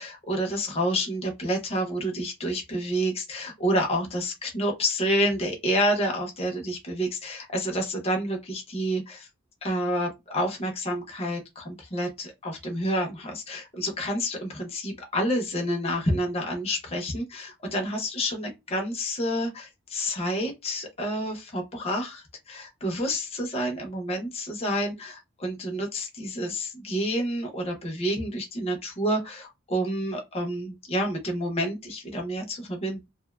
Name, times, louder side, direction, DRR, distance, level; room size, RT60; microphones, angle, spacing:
voice 1, 0.0-9.3 9.6-33.1, equal, 30° left, 0.6 m, -29 dB
2.6 x 2.1 x 2.3 m
head